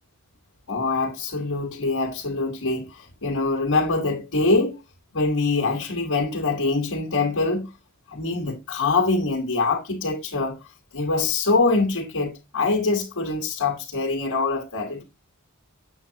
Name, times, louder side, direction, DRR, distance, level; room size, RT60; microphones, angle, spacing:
voice 1, 0.7-4.8 5.1-7.7 8.1-10.6 10.9-15.0, left 3 dB, 65° left, 1.5 m, -24 dB
8.0 x 7.4 x 2.8 m
head